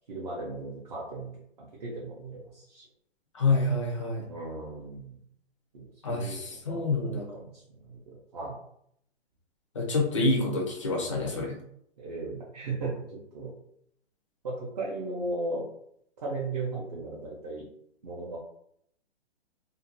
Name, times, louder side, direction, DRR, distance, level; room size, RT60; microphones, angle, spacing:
voice 1, 0.1-1.3 1.6-2.9 4.3-5.2 5.7-8.6 12.0-13.5 14.4-15.7 16.2-17.7 18.0-18.4, right 2 dB, 35° right, -5 dB, 0.5 m, -36 dB
voice 2, 3.3-4.2 6.0-7.2 9.8-11.6, left 2 dB, 30° left, 0 dB, 0.4 m, -27 dB
2.4 x 2.1 x 2.8 m, 0.71 s
hypercardioid pair, 160°, 34 cm